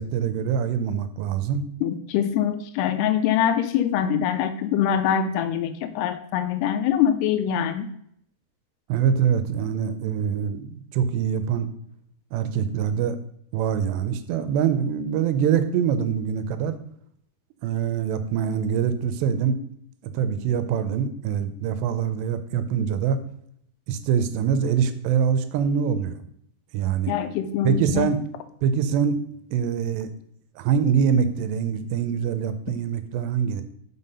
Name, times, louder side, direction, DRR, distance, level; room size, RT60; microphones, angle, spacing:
voice 1, 0.0-1.7 8.9-11.7 12.3-13.2 13.5-16.8 17.6-19.6 20.0-23.2 23.9-26.2 26.7-27.1 27.6-28.2 28.6-29.2 29.5-30.1 30.6-33.6, right 7 dB, 85° right, 10 dB, 2.8 m, -24 dB
voice 2, 1.8-7.9 27.1-28.1, left 9 dB, 85° left, 10 dB, 2.4 m, -24 dB
5.8 x 5.7 x 5.4 m, 0.68 s
omnidirectional pair, 4.8 m